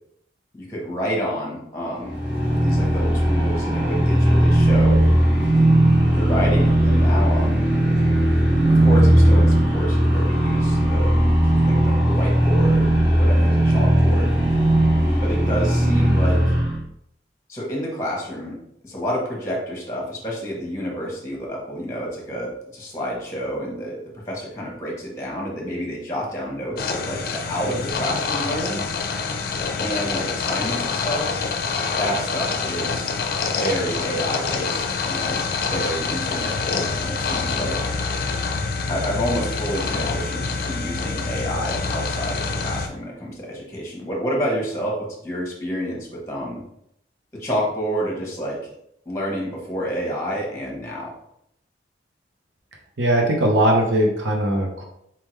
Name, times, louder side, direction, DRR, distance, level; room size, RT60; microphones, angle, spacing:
voice 1, 0.5-2.2 2.5-5.0 6.1-7.6 8.7-11.1 11.6-14.3 15.2-16.5 17.5-18.6 18.8-24.0 24.3-28.8 29.8-31.3 32.0-33.2 33.5-35.4 35.7-37.8 38.9-46.6 47.3-48.7 49.0-51.1, equal, 15° left, -2 dB, 1.1 m, -29 dB
sound 1, 2.0-16.8, right 1 dB, 10° right, 0.9 m, -17 dB
sound 2, 26.8-42.9, left 4 dB, 55° left, 0.5 m, -26 dB
voice 2, 53.0-54.8, right 1 dB, 80° right, 0 dB, 0.8 m, -19 dB
4.2 x 3.6 x 3.1 m, 0.75 s
head